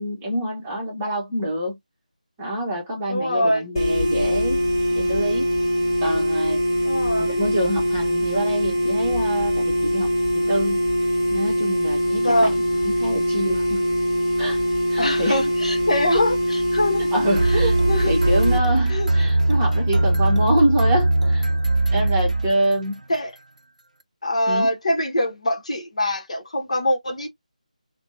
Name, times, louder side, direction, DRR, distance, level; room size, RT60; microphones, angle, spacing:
voice 1, 0.0-1.8 2.4-4.7 5.0-5.5 6.0-6.6 7.2-10.1 10.3-10.8 11.3-13.8 14.4-14.6 14.9-15.4 17.1-17.8 18.0-21.5 21.9-23.0 24.5-24.7, equal, 15° right, 0.8 m, -26 dB
voice 2, 3.1-3.7 6.8-7.3 12.2-12.5 15.0-17.0 17.9-18.1 18.9-19.3 23.1-23.3 24.2-27.3, left 1 dB, 55° left, 0.9 m, -23 dB
sound 1, 3.8-18.6, equal, 30° left, 1.5 m, -22 dB
sound 2, 17.4-23.0, right 2 dB, 70° right, 0.5 m, -20 dB
3.4 x 2.1 x 2.5 m
figure-of-eight pair, 160°, 4 cm